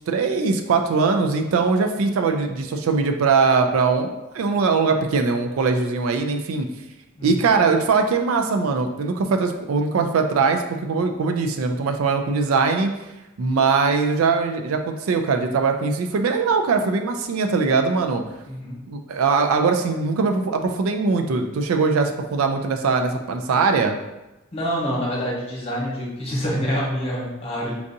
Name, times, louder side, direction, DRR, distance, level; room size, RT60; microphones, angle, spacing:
voice 1, 0.0-6.7 7.2-12.9 13.4-18.2 18.9-24.0, right 4 dB, 75° right, 5 dB, 0.4 m, -21 dB
voice 2, 18.5-18.8 24.5-27.7, equal, 30° left, -5 dB, 1.0 m, -26 dB
4.6 x 2.5 x 2.6 m, 0.98 s
head